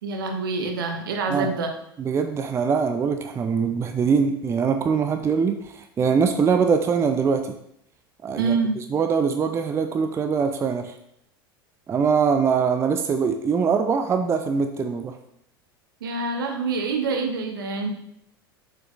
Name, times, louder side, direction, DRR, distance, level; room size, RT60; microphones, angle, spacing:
voice 1, 0.0-1.7 8.3-8.8 16.0-17.9, right 4 dB, 70° right, 4 dB, 1.1 m, -26 dB
voice 2, 2.0-7.5 8.2-10.9 11.9-15.2, right 6 dB, 20° right, 7 dB, 0.4 m, -23 dB
7.0 x 5.7 x 2.5 m, 0.75 s
figure-of-eight pair, 80°, 12 cm